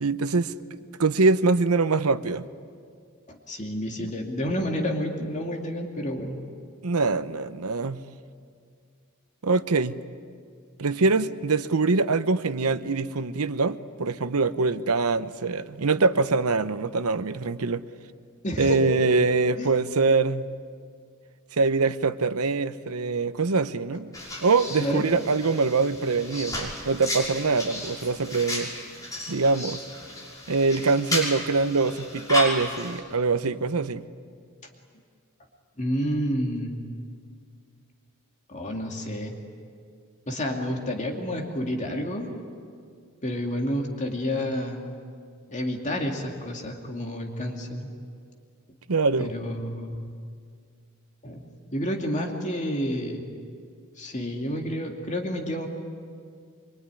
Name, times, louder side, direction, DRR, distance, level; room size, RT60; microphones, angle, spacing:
voice 1, 0.0-2.5 4.0-4.1 6.8-8.0 9.4-10.0 10.8-17.8 18.6-20.5 21.5-24.1 24.4-28.7 29.3-29.8 30.5-34.0 48.9-49.3, right 3 dB, 85° right, 0.9 m, -24 dB
voice 2, 3.3-6.4 18.4-18.8 19.6-19.7 24.8-25.1 35.8-36.8 38.5-39.3 40.3-42.3 43.2-44.9 45.5-47.9 49.2-49.9 51.2-53.2 54.0-55.7, equal, 35° left, 2.6 m, -29 dB
sound 1, 24.1-33.0, left 2 dB, 15° left, 6.1 m, -34 dB
25.0 x 24.0 x 9.9 m
head